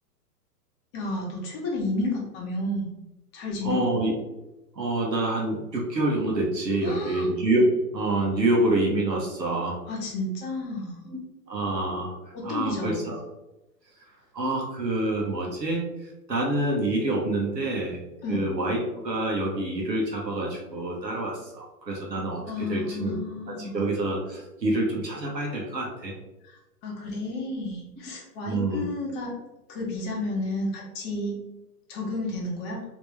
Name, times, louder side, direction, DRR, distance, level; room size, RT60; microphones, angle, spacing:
voice 1, 0.9-2.9 3.3-3.8 6.8-7.3 9.8-11.2 12.3-13.1 18.2-18.5 22.5-23.8 26.4-29.3 29.7-31.3 31.9-32.8, left 2 dB, 20° left, -1 dB, 0.8 m, -31 dB
voice 2, 3.6-4.1 4.7-9.8 11.1-11.2 11.5-12.1 12.4-13.2 14.3-15.9 16.3-18.0 18.3-23.2 23.5-26.1 28.4-28.9, right 2 dB, 90° right, -2 dB, 1.2 m, -27 dB
3.5 x 3.0 x 3.2 m, 0.97 s
figure-of-eight pair, 120°, 49 cm